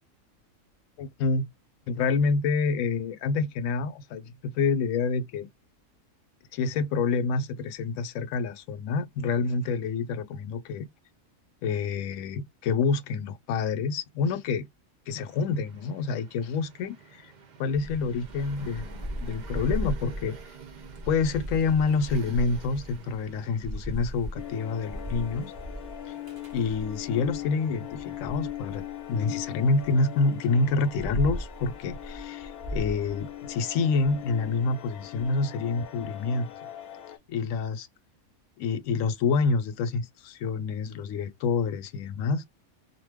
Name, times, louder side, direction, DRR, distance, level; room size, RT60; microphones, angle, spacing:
voice 1, 1.0-1.4 1.9-5.5 6.5-10.9 11.6-14.6 15.1-17.3 17.6-20.3 21.1-25.5 26.1-26.2 26.5-28.8 29.1-36.5 37.3-37.9 38.6-42.4, left 4 dB, 70° left, 0.9 m, -27 dB
sound 1, 15.1-27.5, right 6 dB, 80° right, 0.4 m, -50 dB
Thunder / Rain, 17.7-27.4 27.9-29.9 30.5-35.3, equal, 20° right, 0.7 m, -37 dB
sound 2, 24.4-37.2, left 12 dB, 90° left, 1.1 m, -40 dB
2.5 x 2.2 x 3.3 m
omnidirectional pair, 1.5 m